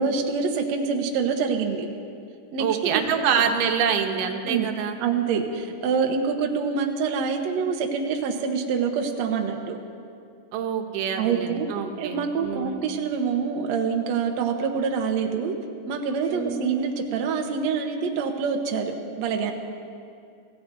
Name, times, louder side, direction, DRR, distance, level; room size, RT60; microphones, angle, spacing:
voice 1, 0.0-1.9 2.5-2.7 2.9-3.2 4.4-4.7 5.0-9.8 11.2-15.5 15.8-19.5, right 5 dB, 65° right, 3 dB, 1.8 m, -26 dB
voice 2, 2.6-5.0 10.5-12.8 16.3-16.6, right 7 dB, 85° right, 4 dB, 2.9 m, -26 dB
26.0 x 16.0 x 2.7 m, 2.4 s
omnidirectional pair, 4.3 m